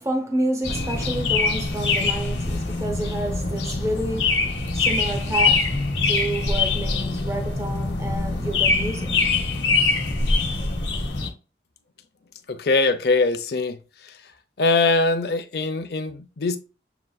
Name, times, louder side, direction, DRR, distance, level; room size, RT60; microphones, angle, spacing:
voice 1, 0.0-9.3, right 1 dB, 15° right, 0.6 m, -29 dB
sound 1, 0.6-11.3, left 3 dB, 85° left, 1.0 m, -23 dB
voice 2, 12.5-13.8 14.6-16.6, left 3 dB, 60° left, 0.5 m, -22 dB
6.8 x 2.5 x 2.3 m
head